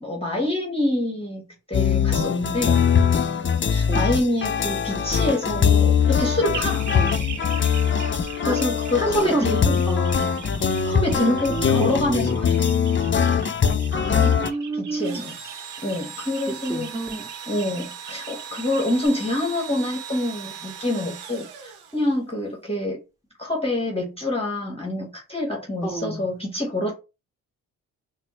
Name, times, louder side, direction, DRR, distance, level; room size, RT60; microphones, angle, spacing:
voice 1, 0.0-2.8 3.7-6.8 8.4-9.8 10.9-12.7 14.7-15.3 15.8-16.9 17.5-23.0 23.4-26.9, left 1 dB, 15° left, 1.3 m, -26 dB
sound 1, 1.7-14.5, left 7 dB, 35° left, 0.6 m, -21 dB
sound 2, 6.5-19.1, right 7 dB, 55° right, 0.8 m, -41 dB
voice 2, 8.9-9.5 9.9-12.0 13.9-15.3 16.7-17.7 25.8-26.3, right 2 dB, 10° right, 1.7 m, -30 dB
Engine / Drill, 15.0-22.3, right 7 dB, 90° right, 0.7 m, -39 dB
4.1 x 2.2 x 3.1 m
supercardioid pair, 55°, 36 cm